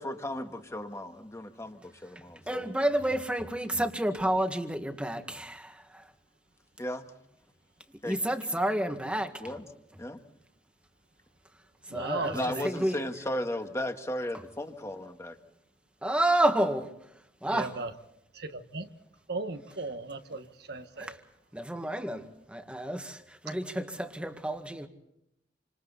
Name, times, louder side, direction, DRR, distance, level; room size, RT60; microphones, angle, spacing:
voice 1, 0.0-2.7 6.8-7.1 8.0-8.2 9.4-9.7 10.0-10.2 12.3-15.4, left 1 dB, 15° left, 1.8 m, -35 dB
voice 2, 2.5-6.0 8.0-9.3 11.9-13.0 16.0-16.9 17.4-17.8 21.0-21.2 21.5-24.9, right 1 dB, 5° right, 1.9 m, -30 dB
voice 3, 11.9-12.6 17.5-17.9 18.7-18.9 19.3-21.1, right 3 dB, 65° right, 1.5 m, -36 dB
28.5 x 26.5 x 4.2 m
head